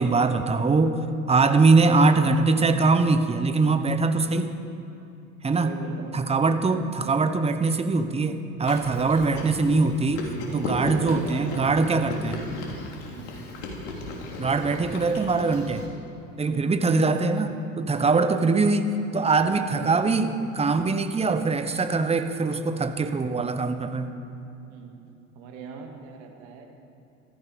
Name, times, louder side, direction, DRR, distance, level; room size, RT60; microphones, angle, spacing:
voice 1, 0.0-4.6 5.4-5.7 6.1-12.5 14.4-15.9 16.4-24.1, right 3 dB, 15° right, 9 dB, 1.0 m, -22 dB
voice 2, 5.4-6.2 10.5-11.7 13.0-13.4 16.4-16.8 18.3-18.4 19.4-20.5 24.7-25.0 25.3-26.7, right 5 dB, 60° right, 2 dB, 2.5 m, -41 dB
Chewing mastication, 8.7-15.9, left 2 dB, 65° left, 3.2 m, -35 dB
15.5 x 14.0 x 5.1 m, 2.8 s
hypercardioid pair, 80°, 40 cm